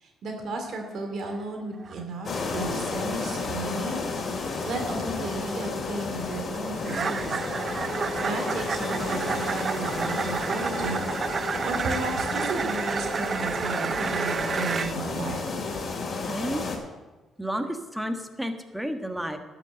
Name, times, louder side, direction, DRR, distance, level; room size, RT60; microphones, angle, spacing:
voice 1, 0.0-4.0 4.7-7.4 8.2-15.5, right 2 dB, 65° right, 3 dB, 2.5 m, -34 dB
sound 1, 1.2-1.4 1.7-2.1 2.5-2.7 3.1-3.3 3.7-4.0 4.6-4.8 5.2-5.4 6.8-14.9, right 6 dB, 45° right, 0.4 m, -31 dB
sound 2, 2.2-16.8, left 4 dB, 45° left, 2.7 m, -32 dB
voice 2, 16.2-16.6 17.4-19.4, equal, 5° right, 6 dB, 1.5 m, -31 dB
11.5 x 6.8 x 7.7 m, 1.2 s
cardioid pair, 75°, 0 cm